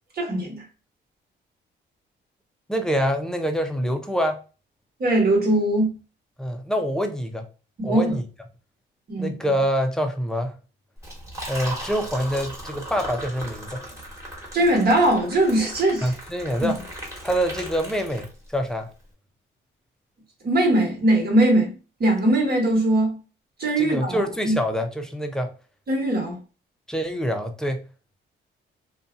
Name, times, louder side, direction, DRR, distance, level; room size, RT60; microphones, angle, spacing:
voice 1, 0.2-0.6 5.0-5.9 7.8-8.1 9.1-9.4 14.5-16.1 16.6-16.7 20.4-21.7 22.0-23.2 23.6-24.2 24.4-24.5 25.9-26.4, right 1 dB, 50° right, 1.3 m, -20 dB
voice 2, 2.7-4.4 6.4-7.5 7.8-8.2 9.2-10.6 11.5-13.8 16.0-16.8 17.2-18.9 23.8-25.5 26.9-27.9, equal, 5° left, 0.5 m, -25 dB
Liquid, 11.0-18.7, right 1 dB, 15° right, 1.2 m, -37 dB
2.6 x 2.3 x 2.5 m
cardioid pair, 90°, 20 cm